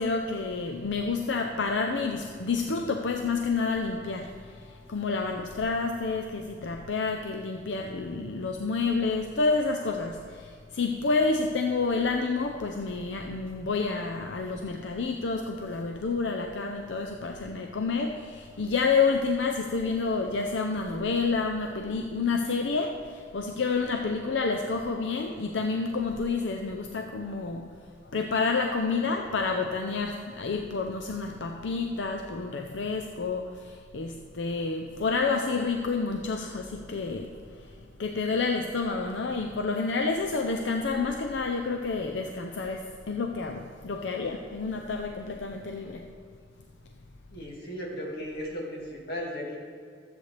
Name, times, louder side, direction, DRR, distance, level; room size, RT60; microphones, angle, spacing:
voice 1, 0.0-27.7 28.0-46.1, left 4 dB, 85° left, 3 dB, 0.6 m, -29 dB
voice 2, 47.3-49.6, equal, 60° left, -3 dB, 2.2 m, -36 dB
13.0 x 8.1 x 3.3 m, 2.1 s
head